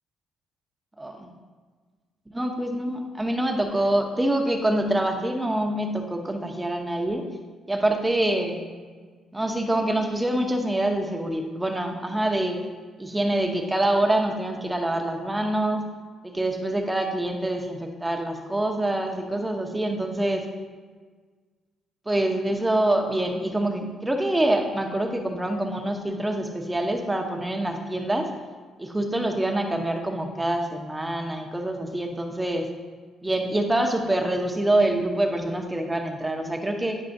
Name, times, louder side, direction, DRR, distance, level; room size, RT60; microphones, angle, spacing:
voice 1, 1.0-1.3 2.3-7.2 7.7-8.6 9.3-12.6 13.0-15.9 16.2-20.4 22.1-28.3 28.8-32.7 33.2-37.0, right 1 dB, 10° right, 3 dB, 0.8 m, -25 dB
9.6 x 5.4 x 2.6 m, 1.5 s
cardioid pair, 90°, 0 cm